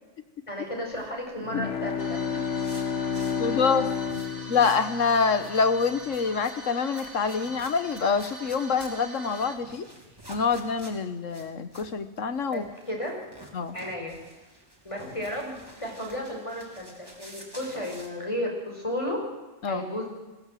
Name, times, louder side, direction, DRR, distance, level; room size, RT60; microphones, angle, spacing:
voice 1, 0.5-2.2 12.5-13.1 13.7-14.2 14.8-19.2 19.7-20.1, equal, 25° left, 0 dB, 5.6 m, -33 dB
sound 1, 0.9-5.0 5.2-18.1, right 1 dB, 20° right, 3.5 m, -50 dB
Bowed string instrument, 1.4-5.9, left 6 dB, 65° left, 1.8 m, -31 dB
sound 2, 2.0-9.6, right 1 dB, 65° right, 2.8 m, -43 dB
voice 2, 3.4-3.9 4.5-9.9 10.3-12.7 13.5-13.8 19.6-19.8, left 5 dB, 85° left, 11 dB, 1.7 m, -26 dB
21.5 x 17.0 x 7.7 m, 1.2 s
omnidirectional pair, 1.3 m